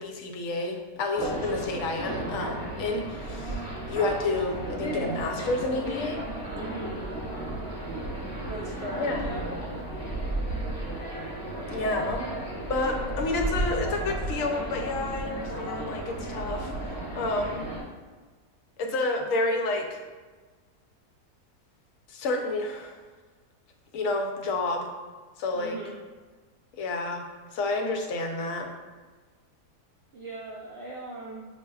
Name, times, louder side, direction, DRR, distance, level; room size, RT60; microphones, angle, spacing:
voice 1, 0.0-3.6 3.9-6.2 9.0-9.3 11.7-12.3 12.6-17.7 18.8-20.0 22.1-23.0 23.9-24.9 25.4-25.8 26.8-27.2 27.5-28.7, left 2 dB, 70° left, 4 dB, 0.9 m, -30 dB
sound 1, 1.2-17.8, right 1 dB, 25° left, 1.1 m, -34 dB
voice 2, 6.5-7.0 8.5-9.5 25.5-25.9 30.1-31.5, right 2 dB, 80° right, -3 dB, 0.5 m, -38 dB
6.4 x 2.7 x 2.3 m, 1.4 s
omnidirectional pair, 1.7 m